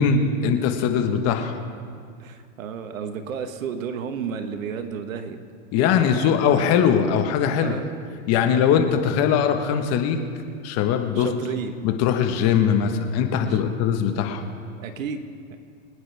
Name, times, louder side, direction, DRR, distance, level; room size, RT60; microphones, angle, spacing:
voice 1, 0.0-1.6 5.7-7.7 8.3-10.2 10.6-11.3 11.8-14.4, left 7 dB, 40° left, 6 dB, 1.3 m, -21 dB
voice 2, 2.2-5.4 5.9-6.7 7.5-7.8 8.4-8.6 11.1-11.8 13.5-13.9 14.8-15.2 15.5-15.6, right 6 dB, 80° right, 8 dB, 1.4 m, -33 dB
25.0 x 9.7 x 3.5 m, 2.2 s
hypercardioid pair, 125°, 39 cm